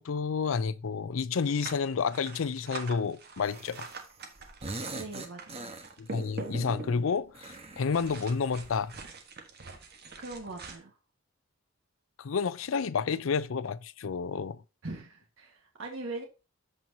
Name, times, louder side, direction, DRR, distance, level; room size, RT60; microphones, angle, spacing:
voice 1, 0.0-3.9 6.0-8.9 12.2-14.6, left 5 dB, 80° left, 0.5 m, -30 dB
sound 1, 1.4-7.3 7.9-10.7, right 3 dB, 55° right, 1.4 m, -43 dB
sound 2, 3.4-4.1 4.4-6.3 7.3-8.8, right 2 dB, 30° right, 1.1 m, -43 dB
voice 2, 4.9-5.7 10.2-10.9 14.8-16.2, right 2 dB, 75° right, 1.6 m, -41 dB
13.5 x 4.5 x 2.8 m
head